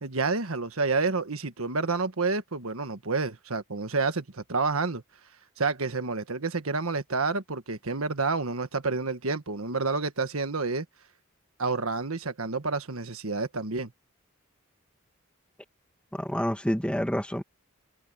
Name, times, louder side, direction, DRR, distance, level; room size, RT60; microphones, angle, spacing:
voice 1, 0.0-5.0 5.6-10.8 11.6-13.9, right 4 dB, 70° right, 1.5 m, -29 dB
voice 2, 16.1-17.4, equal, 5° left, 2.3 m, -28 dB
head